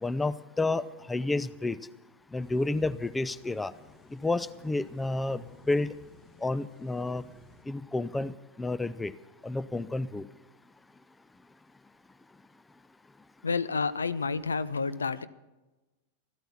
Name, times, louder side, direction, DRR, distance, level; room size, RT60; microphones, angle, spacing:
voice 1, 0.0-0.8 1.1-1.8 2.3-3.7 4.2-5.9 6.4-7.2 7.7-9.1 9.4-10.3, left 2 dB, 10° left, 17 dB, 0.4 m, -30 dB
sound 1, 2.4-7.6, left 4 dB, 30° left, 2.0 m, -56 dB
voice 2, 13.4-15.3, left 4 dB, 75° left, 16 dB, 0.5 m, -29 dB
14.0 x 12.5 x 5.8 m, 1.1 s
figure-of-eight pair, 90°, 0 cm